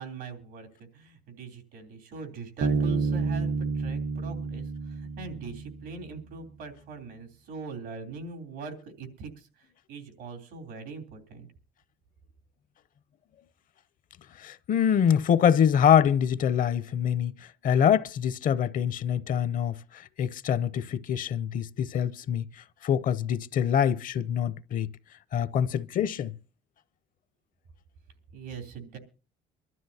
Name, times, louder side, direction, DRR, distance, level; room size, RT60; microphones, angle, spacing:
voice 1, 0.0-11.5 28.3-29.0, right 4 dB, 90° right, 3.2 m, -42 dB
Bass guitar, 2.6-6.2, right 4 dB, 55° right, 0.6 m, -29 dB
voice 2, 14.4-22.5 22.8-24.9 25.3-26.3, left 8 dB, 55° left, 0.6 m, -25 dB
25.0 x 12.5 x 2.8 m
cardioid pair, 110°, 17 cm